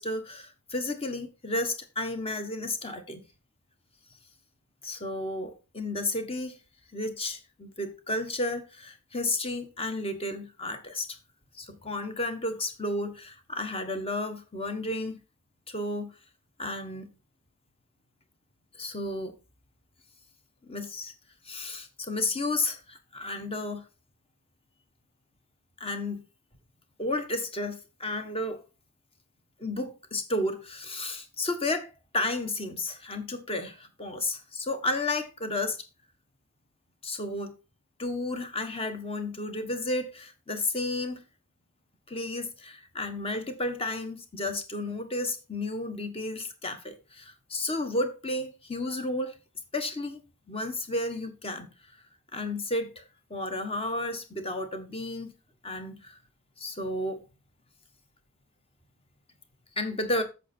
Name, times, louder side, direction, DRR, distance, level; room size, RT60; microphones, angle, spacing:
voice 1, 0.0-3.2 4.8-6.6 6.9-11.1 11.5-15.2 15.7-16.1 16.6-17.1 18.8-19.3 20.6-21.1 21.4-23.9 25.8-26.2 27.0-28.6 29.6-35.8 37.0-37.6 38.0-41.2 42.1-49.4 49.7-50.2 50.5-51.7 52.3-53.0 53.3-55.3 55.6-56.2 56.6-57.2 59.8-60.2, left 2 dB, 25° left, 1.3 m, -32 dB
8.2 x 6.9 x 4.4 m
head